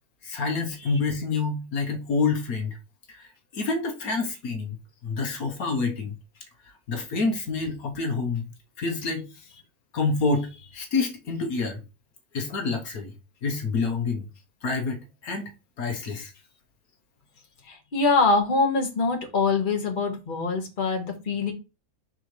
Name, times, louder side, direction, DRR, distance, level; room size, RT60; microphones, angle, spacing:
voice 1, 0.2-2.8 3.1-6.2 6.6-8.5 8.8-9.5 9.9-11.8 12.3-13.1 13.4-14.3 14.6-15.5 15.8-16.3, left 4 dB, 75° left, 1.6 m, -28 dB
voice 2, 17.7-21.5, left 3 dB, 35° left, 1.6 m, -24 dB
6.6 x 5.6 x 3.2 m
omnidirectional pair, 1.6 m